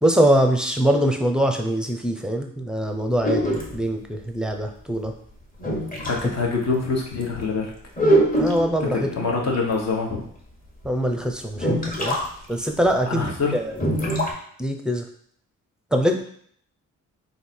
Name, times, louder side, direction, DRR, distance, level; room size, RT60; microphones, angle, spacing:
voice 1, 0.0-5.1 8.3-9.1 10.8-12.2 12.5-13.8 14.6-15.0 15.9-16.2, right 1 dB, ahead, 4 dB, 0.7 m, -23 dB
sound 1, 3.2-3.8 5.0-5.1 5.6-6.2 6.8-6.9 7.2-7.4 8.0-8.8 10.1-10.2 10.8-10.9 11.6-12.2 12.5-12.6 12.9-13.0 13.7-14.3, right 1 dB, 25° left, 1.3 m, -22 dB
voice 2, 6.0-7.7 8.8-10.3 13.1-13.5, left 4 dB, 50° left, -1 dB, 1.3 m, -25 dB
3.7 x 2.8 x 4.4 m, 0.62 s
cardioid pair, 70°, 34 cm